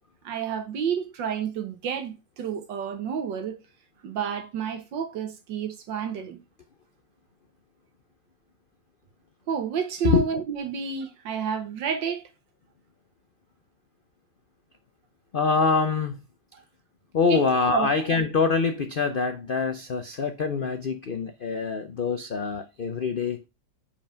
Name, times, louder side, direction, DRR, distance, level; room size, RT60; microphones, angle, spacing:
voice 1, 0.2-3.6 4.0-6.4 9.5-12.2 16.5-16.6 17.3-17.4 17.7-17.9, right 7 dB, 85° right, 1.9 m, -30 dB
voice 2, 15.3-16.2 17.1-23.4, left 4 dB, 85° left, 0.4 m, -24 dB
5.5 x 5.2 x 5.0 m
omnidirectional pair, 1.9 m